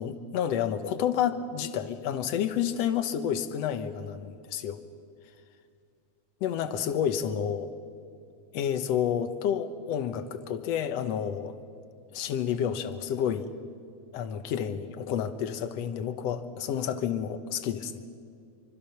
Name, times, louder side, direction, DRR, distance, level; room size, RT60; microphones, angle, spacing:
voice 1, 0.0-4.8 6.4-7.7 8.5-11.6 12.1-13.5 14.1-18.0, left 9 dB, 65° left, 10 dB, 2.0 m, -30 dB
25.0 x 25.0 x 5.8 m, 2.3 s
omnidirectional pair, 3.3 m